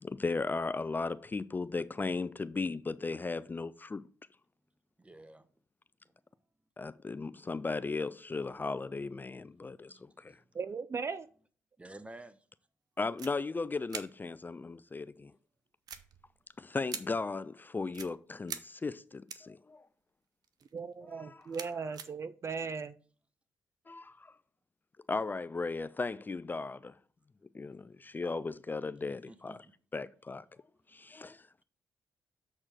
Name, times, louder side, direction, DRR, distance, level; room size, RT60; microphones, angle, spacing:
voice 1, 0.0-4.0 6.8-10.4 13.0-15.3 16.6-19.9 21.1-21.5 23.9-24.3 25.1-27.0 27.5-29.7 29.9-30.4 30.9-31.6, left 3 dB, 25° left, 0.4 m, -36 dB
voice 2, 5.0-5.4 9.8-10.4 11.8-12.4 29.2-29.6, right 2 dB, 15° right, 0.9 m, -51 dB
voice 3, 10.5-11.3 20.7-23.0, right 5 dB, 40° right, 0.4 m, -37 dB
sound 1, 13.2-13.3 13.9-14.0 15.9-16.4 16.9-17.0 17.9-18.1 18.5-18.6 19.3-19.6 20.4-20.8 21.1-22.1, right 7 dB, 65° right, 0.8 m, -42 dB
7.4 x 4.4 x 4.9 m
supercardioid pair, 50°, 7 cm